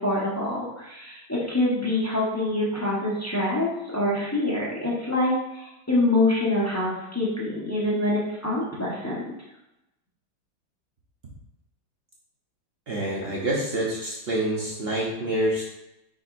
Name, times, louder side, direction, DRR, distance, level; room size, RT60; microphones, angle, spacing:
voice 1, 0.0-3.7 3.9-9.2, left 1 dB, 20° left, -7 dB, 0.4 m, -25 dB
voice 2, 12.9-15.6, right 1 dB, 60° right, -5 dB, 0.6 m, -27 dB
5.1 x 4.2 x 2.5 m, 0.92 s
omnidirectional pair, 2.1 m